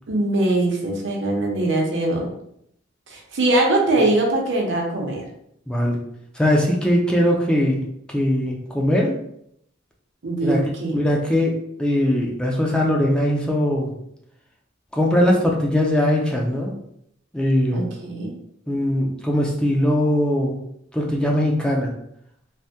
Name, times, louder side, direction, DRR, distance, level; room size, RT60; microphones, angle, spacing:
voice 1, 0.1-2.3 3.1-5.2 10.2-11.0 17.7-18.3, right 2 dB, 70° right, 0 dB, 0.7 m, -22 dB
voice 2, 5.7-6.0 6.4-7.8 8.1-9.1 10.4-10.6 10.9-13.9 14.9-16.7 17.3-17.9 18.7-20.6 20.9-21.9, left 1 dB, 5° left, -2 dB, 0.4 m, -20 dB
3.4 x 2.1 x 2.7 m, 0.73 s
head